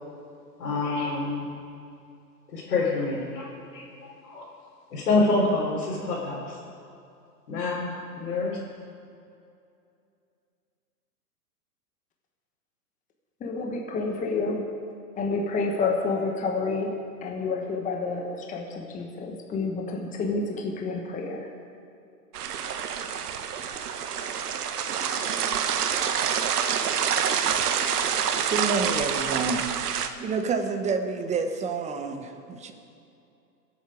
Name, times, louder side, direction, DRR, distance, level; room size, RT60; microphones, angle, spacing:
voice 1, 0.6-1.5 2.5-4.5 4.9-6.6 7.5-8.6, left 3 dB, 70° left, -7 dB, 4.0 m, -27 dB
voice 2, 13.4-14.7 15.2-21.5, left 3 dB, 15° left, 2 dB, 1.3 m, -29 dB
sound 1, 22.3-30.1, right 8 dB, 70° right, 1.2 m, -27 dB
voice 3, 28.1-29.7 30.2-32.7, right 4 dB, 15° right, 6 dB, 1.0 m, -29 dB
23.5 x 8.3 x 5.1 m, 2.6 s
hypercardioid pair, 125°, 48 cm